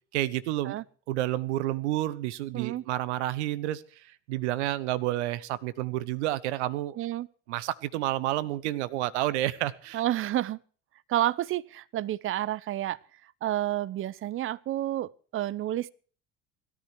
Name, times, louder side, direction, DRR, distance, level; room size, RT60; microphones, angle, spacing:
voice 1, 0.1-0.8 1.1-7.0 7.5-10.0, right 15 dB, 70° right, 1.1 m, -30 dB
voice 2, 2.5-2.8 7.0-7.3 9.9-10.6 11.1-13.0 13.4-15.9, right 13 dB, 35° right, 0.7 m, -30 dB
17.0 x 13.5 x 4.6 m
hypercardioid pair, 70°, 36 cm